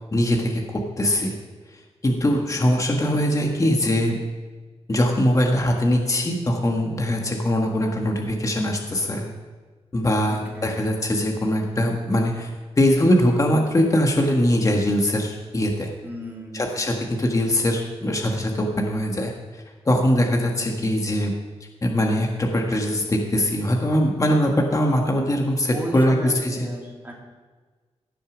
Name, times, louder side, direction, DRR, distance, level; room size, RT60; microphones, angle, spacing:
voice 1, 0.1-1.4 2.0-4.2 4.9-9.3 9.9-12.5 12.8-15.9 16.5-21.3 21.8-26.7, left 1 dB, 30° left, 1 dB, 1.6 m, -22 dB
voice 2, 10.3-11.0 16.0-16.7 25.7-27.1, right 1 dB, 15° right, -2 dB, 3.1 m, -35 dB
16.0 x 6.9 x 6.2 m, 1.4 s
wide cardioid pair, 90°, 11 cm